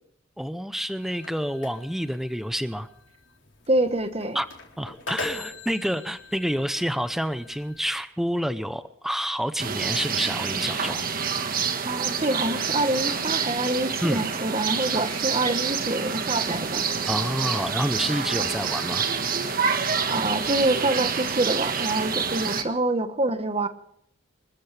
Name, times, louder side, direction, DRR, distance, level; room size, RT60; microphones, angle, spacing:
voice 1, 0.4-2.9 4.3-4.5 4.8-11.0 14.0-14.2 17.1-19.0, equal, ahead, 12 dB, 0.7 m, -28 dB
sound 1, 1.0-8.0, left 3 dB, 70° left, 4.0 m, -42 dB
voice 2, 3.7-4.4 11.9-16.8 20.1-23.7, right 2 dB, 30° right, 10 dB, 1.3 m, -26 dB
sound 2, 9.6-22.6, right 6 dB, 45° right, 1.5 m, -27 dB
25.5 x 14.0 x 3.4 m, 0.71 s
head